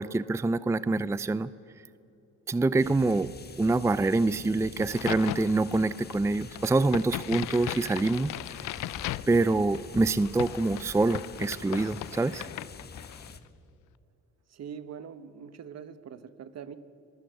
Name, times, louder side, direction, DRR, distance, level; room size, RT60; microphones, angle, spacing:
voice 1, 0.0-1.5 2.5-3.3 3.6-8.3 9.3-12.5, right 3 dB, 10° right, 16 dB, 0.5 m, -25 dB
sound 1, 2.8-13.4, left 4 dB, 35° left, 1.6 m, -46 dB
Crack, 4.8-13.4, left 15 dB, 80° left, 0.6 m, -38 dB
voice 2, 14.5-16.8, right 7 dB, 60° right, 12 dB, 1.3 m, -43 dB
26.0 x 19.5 x 8.2 m, 2.8 s
cardioid pair, 90°, 30 cm